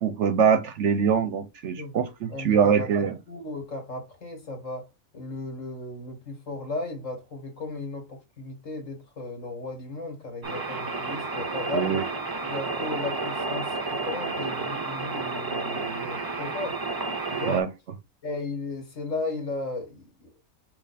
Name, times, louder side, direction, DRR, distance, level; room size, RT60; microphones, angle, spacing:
voice 1, 0.0-3.2 11.7-12.0 17.5-17.7, right 7 dB, 60° right, 0.9 m, -23 dB
voice 2, 2.3-2.9 3.3-4.9 5.1-12.0 12.4-16.8 17.3-17.6 18.2-20.3, left 2 dB, 60° left, 1.8 m, -35 dB
sound 1, 10.4-17.6, right 3 dB, 35° right, 0.3 m, -31 dB
5.6 x 2.3 x 4.1 m
omnidirectional pair, 1.5 m